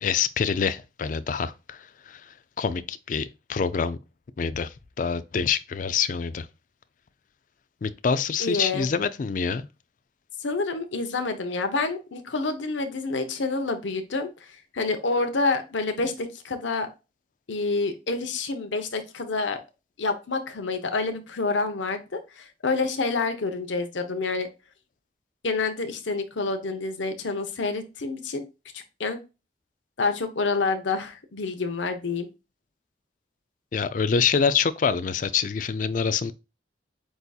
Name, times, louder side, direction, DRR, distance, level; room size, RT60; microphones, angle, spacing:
voice 1, 0.0-4.0 4.4-6.5 7.8-9.7 33.7-36.3, left 6 dB, 45° left, 0.3 m, -26 dB
voice 2, 8.4-8.9 10.4-16.9 17.5-19.6 20.0-24.5 25.4-28.4 28.7-29.2 30.0-32.3, left 3 dB, 80° left, 0.8 m, -28 dB
8.0 x 2.7 x 2.3 m
head